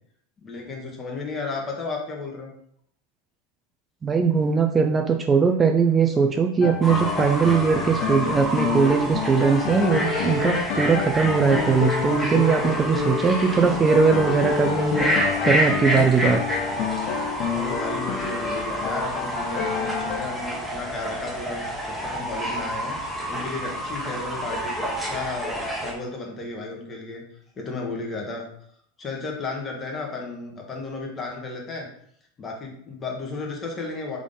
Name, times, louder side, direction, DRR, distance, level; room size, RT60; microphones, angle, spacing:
voice 1, 0.4-2.5 17.5-27.2 27.6-28.5 29.0-31.9 32.4-34.2, left 3 dB, 25° left, 0 dB, 1.2 m, -33 dB
voice 2, 4.0-16.4, right 5 dB, 25° right, 3 dB, 0.4 m, -20 dB
sound 1, 6.6-20.3, left 6 dB, 50° left, 0.5 m, -28 dB
Fowl / Bird, 6.8-25.9, equal, ahead, 1.1 m, -29 dB
3.7 x 3.6 x 3.7 m, 0.68 s
figure-of-eight pair, 85°, 0 cm